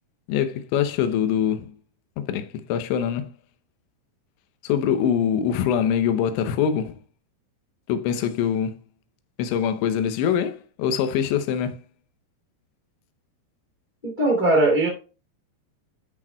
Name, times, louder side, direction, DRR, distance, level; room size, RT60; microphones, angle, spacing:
voice 1, 0.3-1.8 2.2-3.4 4.6-7.0 7.9-8.8 9.4-11.8, left 8 dB, 90° left, 3.2 m, -24 dB
voice 2, 14.0-14.9, right 2 dB, 30° left, 0.8 m, -19 dB
13.0 x 6.1 x 2.2 m
omnidirectional pair, 5.1 m